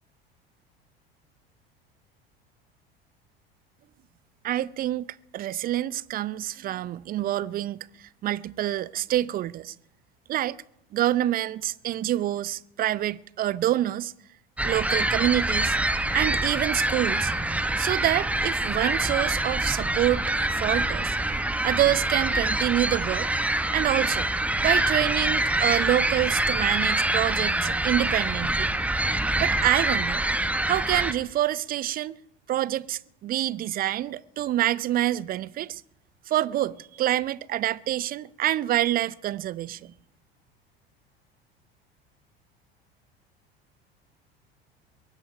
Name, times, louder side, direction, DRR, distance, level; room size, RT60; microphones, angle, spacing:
voice 1, 4.4-9.7 10.3-10.6 10.9-14.1 14.6-15.8 16.1-17.3 17.8-20.2 20.5-21.2 21.6-23.3 23.7-24.3 24.6-28.7 29.4-30.2 30.7-32.2 32.5-35.8 36.3-39.9, right 13 dB, 30° right, 0.6 m, -27 dB
sound 1, 14.6-31.1, right 1 dB, 5° right, 1.0 m, -25 dB
22.5 x 11.5 x 5.2 m
figure-of-eight pair, 70°, 30 cm